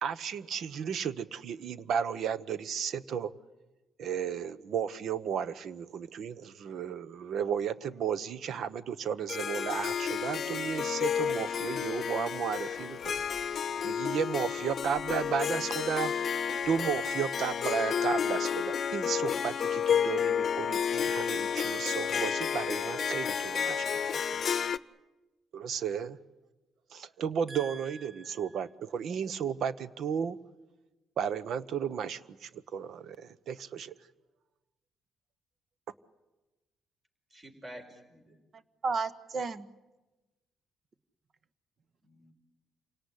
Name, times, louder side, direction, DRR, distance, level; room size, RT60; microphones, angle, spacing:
voice 1, 0.0-3.3 4.0-13.1 13.5-16.1 16.7-23.8 24.1-24.4 25.5-26.2 26.9-30.4 31.2-33.9, right 7 dB, 70° right, 17 dB, 1.0 m, -34 dB
Harp, 9.3-24.8, left 7 dB, 50° left, 0.8 m, -31 dB
sound 1, 12.7-13.7 14.6-15.4 16.5-17.9, right 3 dB, 85° right, 4.1 m, -53 dB
voice 2, 27.5-28.4 38.5-39.7, right 4 dB, 50° right, 14 dB, 1.2 m, -35 dB
voice 3, 37.3-38.4 42.0-42.3, equal, 30° right, 5 dB, 5.5 m, -49 dB
27.5 x 18.0 x 10.0 m, 1.1 s
cardioid pair, 90°, 0 cm